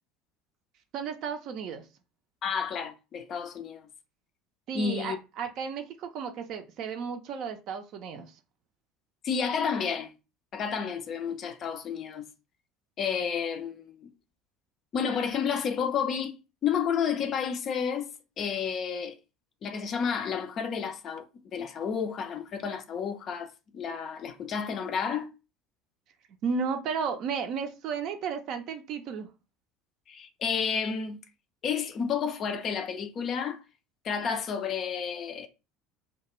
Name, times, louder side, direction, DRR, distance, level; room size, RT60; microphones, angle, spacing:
voice 1, 0.9-1.9 4.7-8.3 26.4-29.3, right 6 dB, 50° right, 0.4 m, -33 dB
voice 2, 2.4-3.9 4.7-5.2 9.2-10.1 10.5-12.3 13.0-14.1 14.9-16.3 16.6-18.1 18.4-19.2 19.6-21.3 21.5-25.3 30.1-31.2 31.6-33.6 34.0-35.5, left 6 dB, 40° left, 0.4 m, -31 dB
2.2 x 2.2 x 2.9 m
figure-of-eight pair, 65°, 0 cm